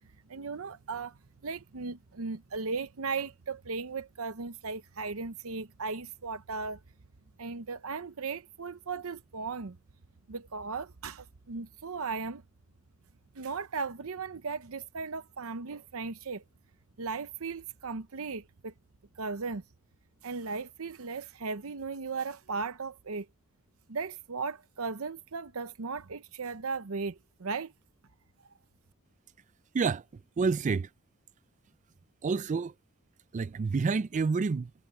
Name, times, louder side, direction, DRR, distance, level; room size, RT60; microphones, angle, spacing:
voice 1, 0.3-1.2 1.4-6.8 7.4-9.8 10.3-12.4 13.4-16.4 17.0-18.7 19.2-19.6 20.2-23.3 23.9-27.7, right 4 dB, 70° right, 0.8 m, -36 dB
voice 2, 30.4-30.9 32.2-32.7 33.3-34.7, right 4 dB, 35° right, 0.3 m, -28 dB
head